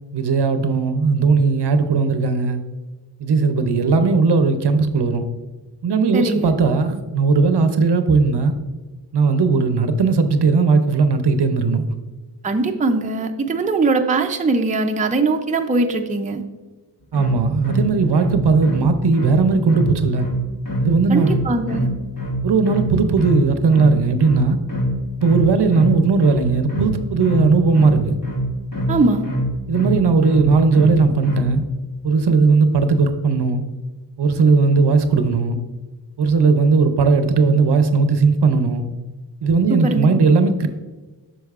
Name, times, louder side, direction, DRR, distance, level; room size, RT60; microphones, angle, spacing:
voice 1, 0.1-2.6 3.2-5.3 5.8-8.5 9.1-11.8 17.1-20.3 20.8-21.3 22.4-24.6 25.2-28.2 29.7-31.6 32.0-33.6 34.2-35.6 36.2-38.8 39.4-40.7, right 4 dB, 70° right, 8 dB, 0.6 m, -17 dB
voice 2, 6.1-6.5 12.4-16.4 21.1-21.9 28.9-29.3 39.7-40.2, right 3 dB, 20° right, 5 dB, 0.5 m, -20 dB
sound 1, 17.1-31.6, equal, 50° left, 1.1 m, -24 dB
8.0 x 6.2 x 2.4 m, 1.2 s
wide cardioid pair, 105°, 43 cm